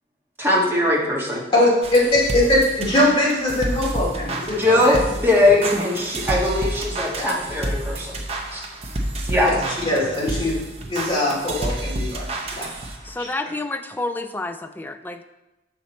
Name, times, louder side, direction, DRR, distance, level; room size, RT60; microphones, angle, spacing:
voice 1, 0.4-1.4 4.6-8.2 8.5-8.7 9.2-9.5, left 1 dB, 10° right, -3 dB, 1.3 m, -20 dB
voice 2, 1.5-2.0 2.3-5.0 7.1-7.3 9.4-10.5 10.9-12.7 13.2-13.3, left 1 dB, 25° left, -6 dB, 2.3 m, -21 dB
sound 1, 1.8-13.2, right 1 dB, 35° right, 0.7 m, -29 dB
voice 3, 13.0-15.2, left 2 dB, 10° left, 8 dB, 0.3 m, -29 dB
6.2 x 5.9 x 4.1 m, 1.0 s
head